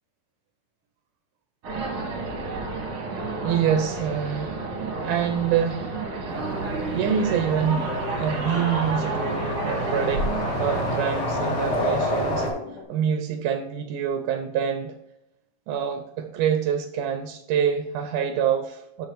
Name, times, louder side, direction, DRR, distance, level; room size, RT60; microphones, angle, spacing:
sound 1, 1.6-11.0, right 3 dB, 50° right, 1.9 m, -30 dB
voice 1, 3.4-4.6 5.0-5.9 6.9-7.9 8.2-10.3 10.6-12.5 12.9-15.0 15.7-19.1, right 8 dB, 80° right, 7 dB, 2.2 m, -26 dB
sound 2, 6.3-12.5, equal, 40° left, 1.9 m, -29 dB
sound 3, 7.7-12.8, left 3 dB, 75° left, 3.4 m, -41 dB
12.5 x 5.0 x 3.0 m, 0.85 s
omnidirectional pair, 3.6 m